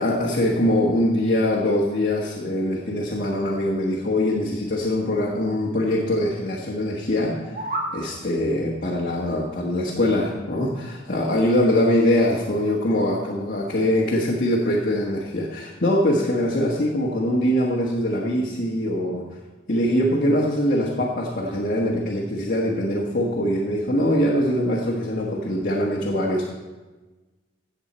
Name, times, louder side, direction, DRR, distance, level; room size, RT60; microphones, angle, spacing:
voice 1, 0.0-7.3 7.9-19.2 19.7-26.5, left 1 dB, 50° left, -4 dB, 1.4 m, -23 dB
sound 1, 7.3-8.0, right 1 dB, 45° right, 1.7 m, -29 dB
15.5 x 7.4 x 4.3 m, 1.2 s
head